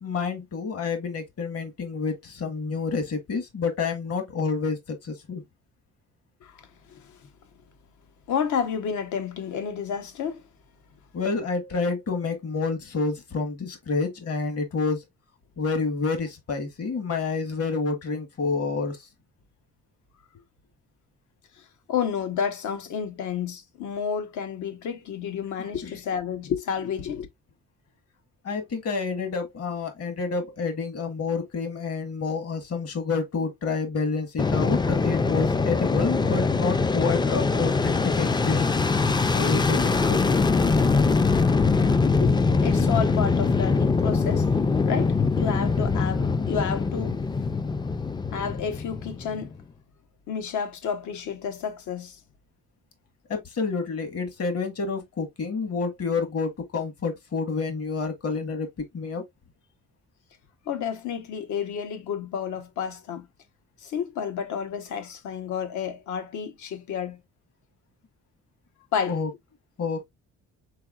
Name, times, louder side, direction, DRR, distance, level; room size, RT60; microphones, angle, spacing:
voice 1, 0.0-5.4 11.1-15.0 15.6-19.1 25.6-25.9 28.4-38.7 39.3-40.2 53.3-58.7 58.9-59.2 69.1-69.3 69.8-70.0, left 4 dB, 55° left, 1.6 m, -29 dB
voice 2, 6.4-7.3 8.3-10.4 21.6-27.3 42.2-44.5 44.8-47.5 48.3-49.5 50.3-52.2 60.7-63.3 63.8-67.2 68.9-69.2, left 7 dB, 75° left, 1.1 m, -31 dB
Fixed-wing aircraft airplane, 34.4-49.6, left 4 dB, 15° left, 0.4 m, -23 dB
4.7 x 4.0 x 2.4 m
cardioid pair, 90°, 30 cm